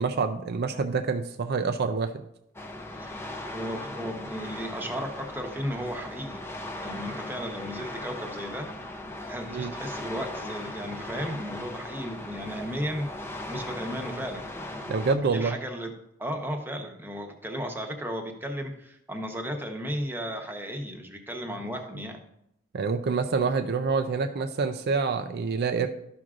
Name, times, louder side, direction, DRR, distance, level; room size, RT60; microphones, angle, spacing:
voice 1, 0.0-2.2 9.5-9.7 14.9-15.6 22.7-25.9, right 4 dB, 50° right, 8 dB, 0.4 m, -27 dB
sound 1, 2.6-15.2, left 1 dB, 10° left, 0.6 m, -38 dB
voice 2, 3.5-6.4 6.8-8.7 9.3-14.5 15.2-15.9 16.2-22.2, equal, 10° right, 3 dB, 0.9 m, -35 dB
12.5 x 6.1 x 2.5 m, 0.79 s
head